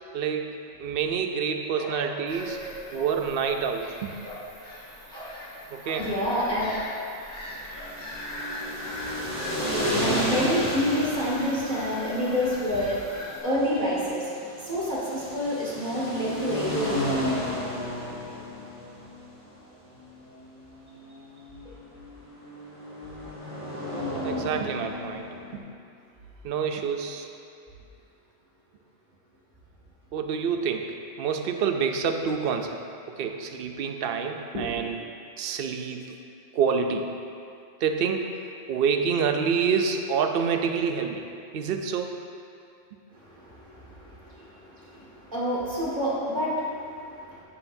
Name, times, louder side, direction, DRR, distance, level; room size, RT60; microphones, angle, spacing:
voice 1, 0.1-2.6 2.9-4.1 5.7-6.2 24.2-25.3 26.4-27.3 30.1-32.8 33.1-35.0 35.4-36.2 36.5-37.1 37.8-38.3 38.7-41.2 41.5-42.1, right 6 dB, 60° right, 5 dB, 0.7 m, -27 dB
voice 2, 1.7-3.1 4.2-4.4 5.1-5.4 5.8-6.8 7.7-7.9 9.5-9.7 10.0-13.0 13.3-14.3 14.6-17.3 34.5-34.7 43.2-47.4, equal, 35° right, -7 dB, 1.9 m, -29 dB
Bird vocalization bird call bird song / Gull seagull, 2.3-13.4, left 1 dB, 45° left, 2.0 m, -41 dB
sound 1, 7.7-25.6, equal, 25° left, 2.0 m, -33 dB
9.8 x 7.6 x 2.7 m, 2.5 s
omnidirectional pair, 1.3 m